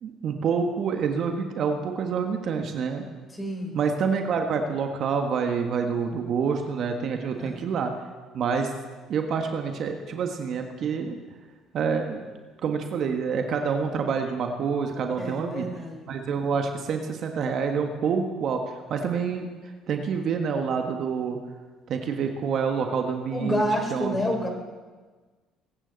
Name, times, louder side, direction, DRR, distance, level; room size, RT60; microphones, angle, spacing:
voice 1, 0.0-3.1 3.7-7.9 8.3-8.7 9.1-11.2 11.7-12.3 12.6-15.7 16.1-18.6 18.9-19.5 19.9-21.4 21.9-23.6 23.9-24.2, right 6 dB, 60° right, 4 dB, 1.5 m, -27 dB
voice 2, 3.3-3.7 7.3-7.6 15.2-16.1 23.3-24.5, equal, 20° left, 3 dB, 3.9 m, -28 dB
21.5 x 9.9 x 4.1 m, 1.4 s
supercardioid pair, 70°, 0 cm